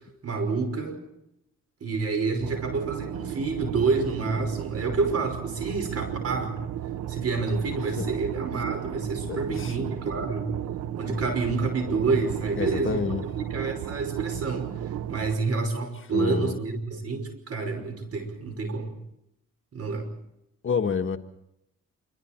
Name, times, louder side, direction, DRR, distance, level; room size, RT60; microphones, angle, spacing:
voice 1, 0.2-1.0 1.8-6.6 7.1-10.5 11.0-13.0 13.4-19.0 19.7-20.1, right 4 dB, 55° right, 8 dB, 5.6 m, -28 dB
sound 1, 2.4-15.4, right 11 dB, 75° right, 1.1 m, -34 dB
voice 2, 9.3-9.7 12.6-13.2 16.1-16.6 20.6-21.2, left 6 dB, 40° left, 6 dB, 1.6 m, -28 dB
26.5 x 24.5 x 4.5 m, 0.82 s
cardioid pair, 90°, 30 cm